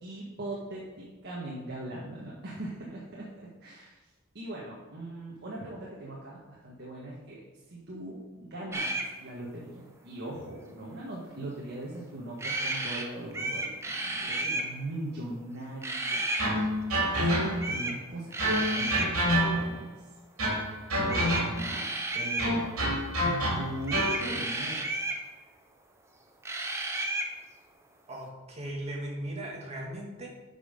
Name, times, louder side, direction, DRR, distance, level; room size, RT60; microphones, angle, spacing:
voice 1, 0.0-4.0 4.3-16.2 17.1-19.9 21.1-21.8 22.1-22.8 23.2-24.8, right 1 dB, 50° right, -5 dB, 1.6 m, -40 dB
sound 1, 8.7-9.1 12.4-13.0 13.3-14.7 15.8-16.5 17.6-18.0 18.3-19.1 21.1-22.5 23.8-25.2 26.4-27.3, right 2 dB, 15° right, 0.8 m, -32 dB
sound 2, 16.4-17.8 18.4-19.9 20.4-21.7 22.4-24.2, equal, 70° right, 3.2 m, -28 dB
voice 2, 28.1-30.3, right 1 dB, 30° right, -2 dB, 1.9 m, -37 dB
8.4 x 5.5 x 5.2 m, 1.2 s
head